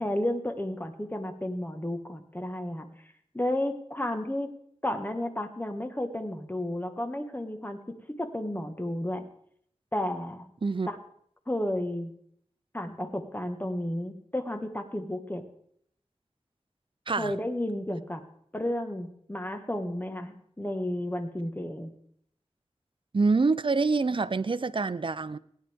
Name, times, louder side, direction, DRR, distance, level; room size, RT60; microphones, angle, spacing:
voice 1, 0.0-2.9 3.3-4.5 4.8-9.2 9.9-10.5 10.9-11.0 11.5-12.1 12.7-15.4 17.1-18.2 18.5-21.9, left 1 dB, 15° left, 6 dB, 1.5 m, -32 dB
voice 2, 23.1-25.4, right 4 dB, 50° right, 15 dB, 0.5 m, -26 dB
17.0 x 10.0 x 3.5 m, 0.65 s
wide cardioid pair, 55°, 11 cm